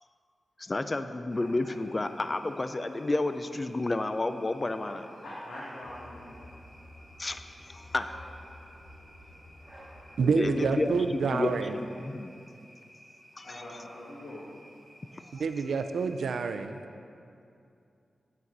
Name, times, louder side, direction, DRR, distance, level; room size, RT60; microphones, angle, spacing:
voice 1, 0.6-5.1 7.2-8.2 10.3-12.3 13.4-13.6, left 2 dB, 25° left, 10 dB, 0.3 m, -31 dB
sound 1, 1.3-16.6, equal, 10° right, 1.8 m, -54 dB
voice 2, 5.2-6.4 9.9-10.0 13.4-14.4, left 1 dB, 80° left, -8 dB, 1.7 m, -43 dB
sound 2, 5.8-11.1, left 1 dB, 55° left, 1.0 m, -51 dB
voice 3, 10.2-11.8 15.4-16.8, right 5 dB, 85° right, 8 dB, 0.4 m, -28 dB
9.0 x 8.5 x 4.0 m, 2.6 s
wide cardioid pair, 160°, 0 cm